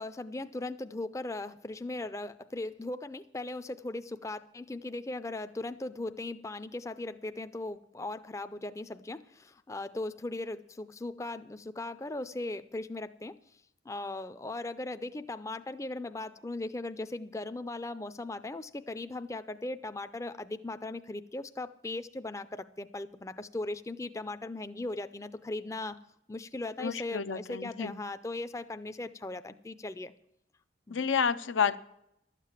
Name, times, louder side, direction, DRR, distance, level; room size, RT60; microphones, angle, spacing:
voice 1, 0.0-26.0 26.3-30.1 30.9-31.0, left 2 dB, 15° left, 0.4 m, -38 dB
voice 2, 26.8-27.9 30.9-31.8, left 6 dB, 90° left, 0.6 m, -30 dB
12.5 x 7.5 x 8.8 m
head